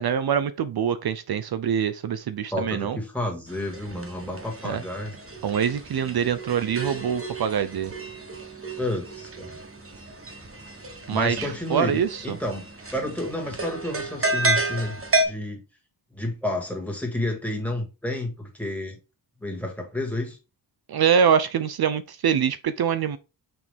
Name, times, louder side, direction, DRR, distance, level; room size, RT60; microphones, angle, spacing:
voice 1, 0.0-3.0 4.6-4.8 5.4-7.9 11.1-12.4 20.9-23.2, right 8 dB, 60° right, 0.5 m, -24 dB
voice 2, 2.5-5.1 8.8-9.6 11.1-12.6 12.9-15.0 15.3-15.6 16.1-19.0 19.4-20.4, left 1 dB, 5° left, 1.9 m, -30 dB
sound 1, 3.5-15.2, right 2 dB, 30° right, 1.3 m, -31 dB
6.2 x 4.5 x 3.5 m
wide cardioid pair, 150°, 42 cm